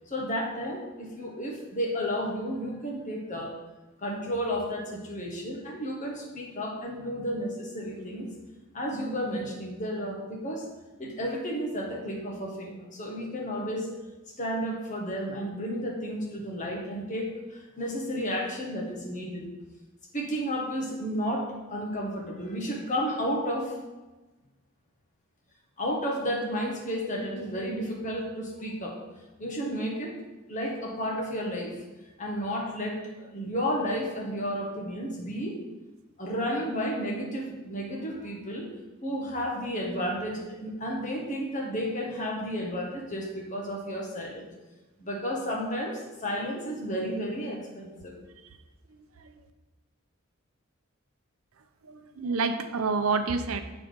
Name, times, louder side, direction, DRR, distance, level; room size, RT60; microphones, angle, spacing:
voice 1, 0.1-3.6 4.0-8.3 8.7-10.7 11.0-13.9 14.4-19.4 20.1-23.7 25.8-29.0 29.4-30.1 30.5-31.7 32.2-35.6 36.2-38.7 39.0-44.5 45.0-48.1, equal, 35° left, 0 dB, 1.4 m, -32 dB
voice 2, 51.9-53.6, right 4 dB, 80° right, 8 dB, 0.6 m, -28 dB
7.1 x 4.2 x 5.1 m, 1.1 s
head